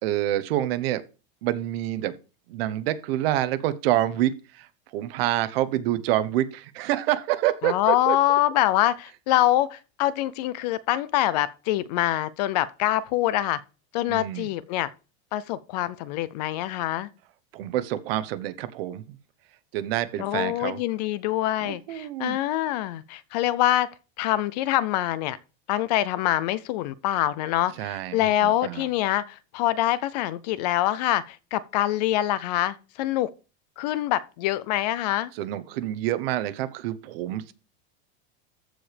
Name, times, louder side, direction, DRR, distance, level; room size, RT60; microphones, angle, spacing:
voice 1, 0.0-1.0 1.4-2.2 2.5-4.7 4.9-8.2 14.1-14.5 17.5-19.2 19.7-20.8 21.6-22.4 27.8-28.9 35.3-37.5, right 13 dB, 55° right, 1.1 m, -27 dB
voice 2, 7.6-13.6 13.9-14.9 15.3-17.1 20.2-23.9 24.2-25.4 25.7-33.3 33.8-35.3, left 14 dB, 40° left, 0.4 m, -25 dB
14.0 x 4.9 x 3.3 m
supercardioid pair, 170°, 35 cm